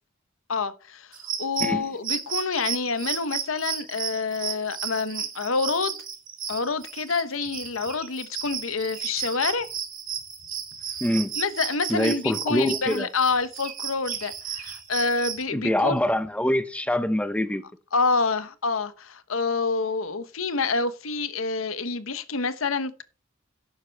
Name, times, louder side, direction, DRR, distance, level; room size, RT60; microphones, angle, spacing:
voice 1, 0.5-5.9 6.5-9.7 11.4-16.0 17.9-23.0, left 4 dB, 80° left, 1.0 m, -27 dB
sound 1, 1.1-15.4, right 8 dB, 45° right, 2.6 m, -34 dB
voice 2, 11.0-11.3 11.9-13.1 15.5-17.6, left 1 dB, 5° left, 0.7 m, -24 dB
11.5 x 9.4 x 3.4 m
head